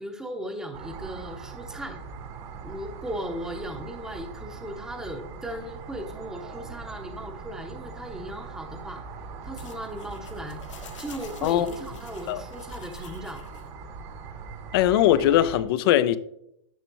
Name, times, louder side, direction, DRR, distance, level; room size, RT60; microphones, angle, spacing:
voice 1, 0.0-2.0 2.6-9.0 9.4-13.4, equal, 5° right, 0.9 m, -37 dB
sound 1, 0.7-15.6, right 5 dB, 35° right, 1.2 m, -41 dB
sound 2, 9.6-13.7, left 8 dB, 70° left, 1.4 m, -48 dB
voice 2, 14.7-16.2, left 12 dB, 50° left, 0.5 m, -20 dB
10.0 x 5.9 x 3.0 m
figure-of-eight pair, 105°, 16 cm